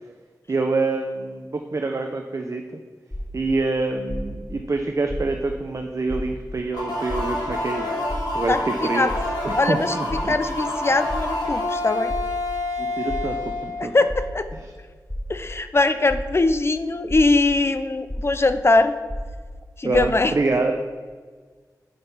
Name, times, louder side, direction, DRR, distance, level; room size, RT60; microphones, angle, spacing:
voice 1, 0.5-2.6 3.3-7.9 8.3-9.1 9.4-10.3 12.8-13.9 14.5-14.6 19.8-21.0, right 3 dB, 45° right, 4 dB, 0.4 m, -26 dB
sound 1, 3.1-3.5 4.1-4.5 5.1-5.5 6.1-6.5 7.1-7.5 8.1-8.5 9.1-9.5 10.1-10.5 11.1-11.5 12.1-12.5 13.1-13.5 14.1-14.5 15.1-15.5 16.1-16.5 17.1-17.5 18.1-18.5 19.1-19.4 19.9-20.0, equal, 5° left, 0.8 m, -31 dB
sound 2, 6.7-14.3, left 2 dB, 80° left, 1.3 m, -28 dB
voice 2, 8.5-9.1 9.6-9.9 10.3-12.1 13.8-14.5 15.3-18.9 19.8-20.3, left 2 dB, 40° left, 11 dB, 0.4 m, -21 dB
5.3 x 5.2 x 4.4 m, 1.5 s
cardioid pair, 50°, 7 cm